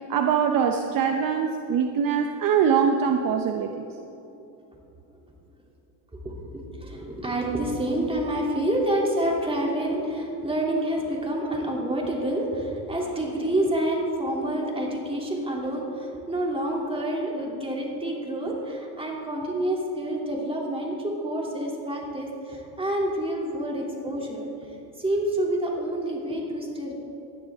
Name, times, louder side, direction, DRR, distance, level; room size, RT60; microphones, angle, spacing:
voice 1, 0.0-3.8, right 7 dB, 45° right, 5 dB, 0.9 m, -23 dB
voice 2, 6.1-26.9, right 1 dB, 10° right, -2 dB, 2.9 m, -28 dB
19.0 x 12.5 x 3.6 m, 2.9 s
cardioid pair, 120°, 48 cm